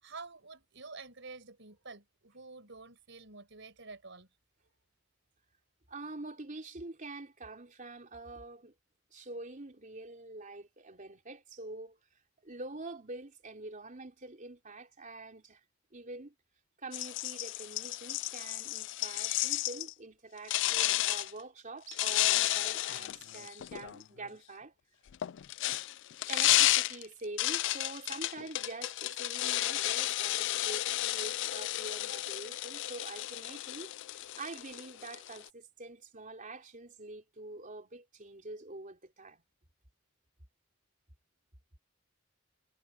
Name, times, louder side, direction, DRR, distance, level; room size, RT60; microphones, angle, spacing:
voice 1, 0.0-4.3, right 4 dB, 65° right, 5.4 m, -49 dB
voice 2, 5.9-8.7 9.1-12.0 12.4-15.6 15.9-16.3 16.8-24.7 26.2-39.4, right 2 dB, 40° right, 3.5 m, -46 dB
sound 1, 16.9-19.9 20.5-21.3 21.9-24.0 25.1-35.5, left 16 dB, 65° left, 0.4 m, -32 dB
head